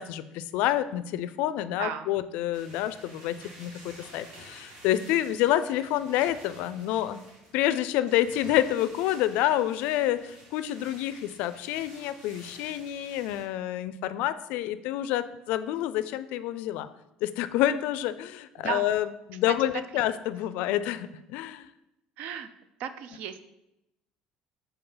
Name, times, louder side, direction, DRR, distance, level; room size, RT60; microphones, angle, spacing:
voice 1, 0.0-7.2 7.5-16.9 17.2-21.7, left 13 dB, 75° left, 14 dB, 0.3 m, -28 dB
voice 2, 1.8-2.2 18.6-18.9 19.5-19.6 22.2-22.5 22.8-23.4, right 9 dB, 70° right, 11 dB, 0.5 m, -34 dB
sound 1, 2.5-13.4, right 1 dB, 85° right, 2.3 m, -51 dB
6.8 x 4.2 x 3.9 m, 0.90 s
cardioid pair, 135°, 3 cm